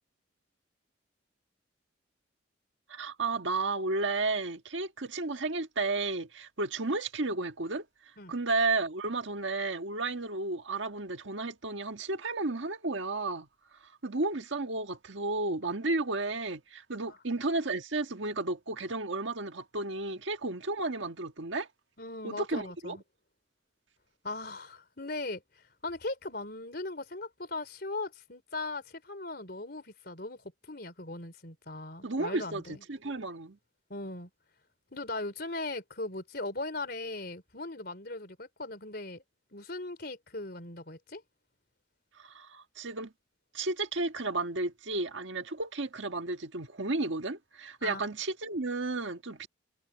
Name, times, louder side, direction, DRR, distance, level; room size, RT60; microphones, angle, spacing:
voice 1, 2.9-7.8 8.3-13.5 13.8-21.7 22.2-23.0 32.0-33.6 42.2-43.1 43.5-49.5, right 3 dB, 75° right, 1.6 m, -33 dB
voice 2, 22.0-23.0 24.2-25.4 25.8-30.4 30.7-32.8 33.9-34.3 34.9-39.2 39.5-41.2 47.8-48.1, left 2 dB, 55° left, 4.2 m, -39 dB
head